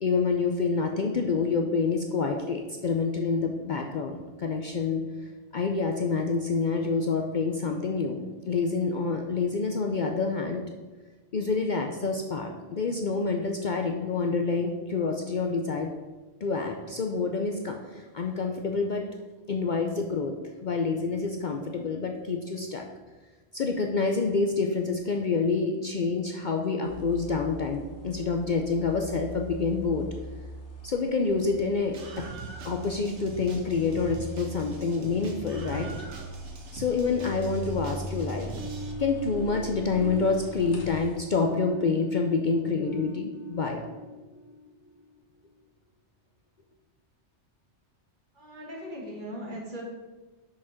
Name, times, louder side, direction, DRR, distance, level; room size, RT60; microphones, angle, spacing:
voice 1, 0.0-5.0 5.5-10.6 11.3-15.9 16.4-19.0 19.5-20.3 20.6-22.9 23.5-30.1 30.8-32.0 32.6-35.9 36.7-38.5 39.0-43.8, left 4 dB, 50° left, 3 dB, 0.6 m, -27 dB
sound 1, 26.8-41.2, equal, 75° left, 1.5 m, -41 dB
Screaming, 31.9-38.9, right 4 dB, 80° right, 1.2 m, -44 dB
sound 2, 38.6-45.3, left 1 dB, 25° right, 0.3 m, -41 dB
voice 2, 48.4-49.9, equal, 45° right, -3 dB, 1.9 m, -39 dB
6.2 x 5.0 x 5.7 m, 1.2 s
omnidirectional pair, 1.2 m